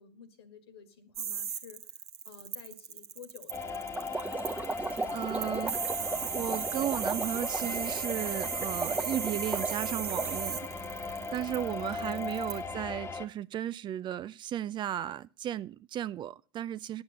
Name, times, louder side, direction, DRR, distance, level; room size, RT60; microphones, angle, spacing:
voice 1, 0.0-2.0 2.3-3.9 12.0-12.3, left 6 dB, 70° left, 1.7 m, -51 dB
sound 1, 1.2-12.6, right 7 dB, 75° right, 1.4 m, -36 dB
sound 2, 3.5-13.3, left 4 dB, 15° left, 1.3 m, -38 dB
sound 3, 4.0-10.4, right 3 dB, 10° right, 1.0 m, -36 dB
voice 2, 5.1-10.6 11.0-17.0, right 11 dB, 35° right, 0.4 m, -35 dB
10.5 x 7.9 x 6.5 m
figure-of-eight pair, 75°, 14 cm